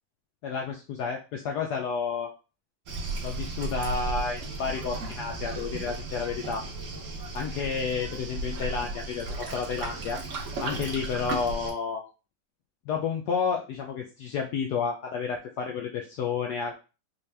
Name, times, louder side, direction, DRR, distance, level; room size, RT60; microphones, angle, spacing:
voice 1, 0.4-2.3 3.2-6.6 7.3-10.2 10.6-12.0 12.9-16.7, left 5 dB, 85° left, 1 dB, 0.9 m, -31 dB
Waves surf, 2.9-11.7, right 2 dB, 60° right, 0.8 m, -35 dB
4.2 x 2.3 x 3.2 m, 0.32 s
omnidirectional pair, 2.3 m